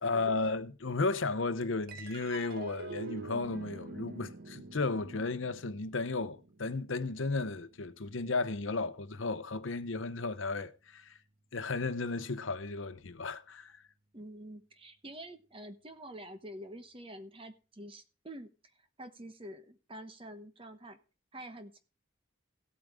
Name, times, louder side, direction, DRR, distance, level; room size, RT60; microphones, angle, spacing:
voice 1, 0.0-11.2 11.5-13.7, left 3 dB, 70° left, 0.8 m, -34 dB
sound 1, 1.9-8.6, right 3 dB, 50° right, 0.8 m, -47 dB
voice 2, 14.1-21.0 21.3-21.8, right 1 dB, 25° right, 1.0 m, -47 dB
16.0 x 8.6 x 3.5 m
head